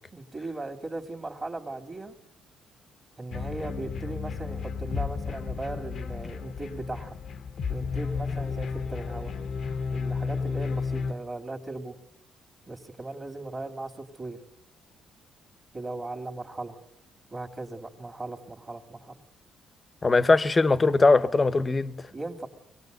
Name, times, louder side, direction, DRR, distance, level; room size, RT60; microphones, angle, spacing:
voice 1, 0.1-2.1 3.2-7.2 7.7-9.3 9.9-12.0 12.7-14.4 15.7-16.8 17.3-19.2 22.1-22.5, right 2 dB, 25° right, 2.2 m, -38 dB
sound 1, 3.3-11.1, left 5 dB, 55° left, 0.8 m, -32 dB
voice 2, 20.0-22.1, left 3 dB, 25° left, 0.9 m, -21 dB
24.0 x 18.5 x 8.0 m
cardioid pair, 100°, 0 cm